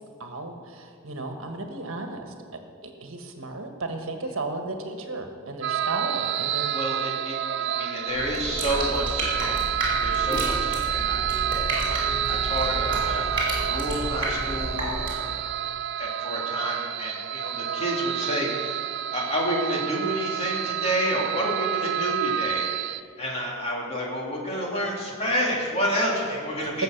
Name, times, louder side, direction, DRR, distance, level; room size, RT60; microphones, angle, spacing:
voice 1, 0.2-2.3 2.8-6.8 26.7-26.8, right 2 dB, 70° right, 4 dB, 1.4 m, -34 dB
sound 1, 5.6-23.0, right 10 dB, 55° right, 0.4 m, -29 dB
voice 2, 6.7-11.2 11.7-15.7 16.0-18.8 19.1-26.8, equal, 30° left, -3 dB, 2.9 m, -30 dB
sound 2, 8.1-15.4, right 1 dB, 25° right, 4.5 m, -31 dB
18.0 x 7.6 x 6.7 m, 2.1 s
head